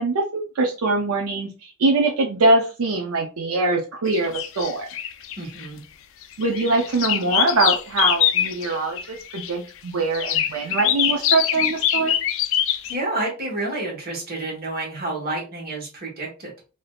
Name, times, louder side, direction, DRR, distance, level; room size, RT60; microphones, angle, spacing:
voice 1, 0.0-4.9 6.4-12.2, right 2 dB, 85° right, 2 dB, 0.5 m, -23 dB
sound 1, 4.1-5.7 6.2-9.5 10.1-12.9, left 11 dB, 65° left, 0.3 m, -23 dB
voice 2, 5.4-5.8 12.9-16.5, right 2 dB, 45° right, -2 dB, 1.4 m, -29 dB
3.3 x 2.7 x 2.3 m, 0.34 s
head